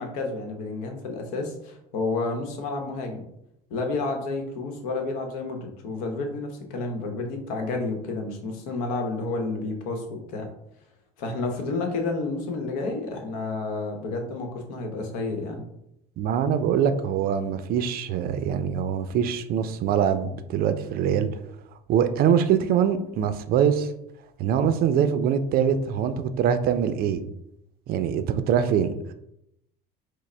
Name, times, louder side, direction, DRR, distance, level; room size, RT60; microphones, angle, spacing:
voice 1, 0.0-3.2 3.7-10.5 11.2-15.6, left 3 dB, 80° left, 3 dB, 0.9 m, -30 dB
voice 2, 16.2-21.3 21.9-23.9 24.4-27.2 27.9-29.1, right 8 dB, 50° right, 10 dB, 0.4 m, -23 dB
4.7 x 2.0 x 3.2 m, 0.80 s
supercardioid pair, 100°, 19 cm